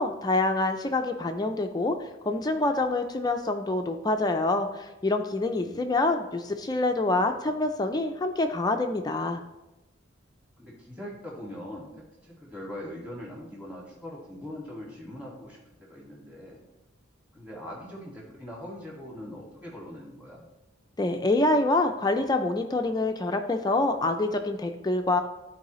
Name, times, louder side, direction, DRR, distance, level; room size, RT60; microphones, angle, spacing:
voice 1, 0.0-9.4 21.0-25.2, left 2 dB, 20° left, 5 dB, 0.4 m, -26 dB
voice 2, 5.4-5.8 10.6-11.9 12.2-16.6 17.3-20.4, left 1 dB, 5° right, -5 dB, 1.9 m, -41 dB
13.0 x 4.7 x 3.0 m, 0.98 s
head